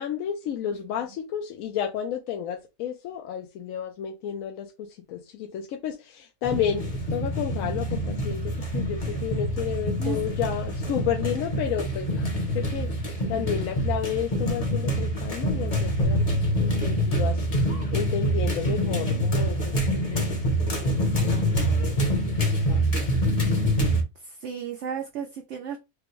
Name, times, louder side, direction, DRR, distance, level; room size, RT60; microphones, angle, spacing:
voice 1, 0.0-12.9 13.3-16.2 16.5-17.5 17.9-22.9, left 9 dB, 75° left, 0.9 m, -32 dB
sound 1, 6.4-24.0, equal, 30° left, 0.8 m, -26 dB
voice 2, 24.2-25.8, right 7 dB, 65° right, 0.7 m, -34 dB
5.1 x 2.2 x 3.0 m
omnidirectional pair, 1.5 m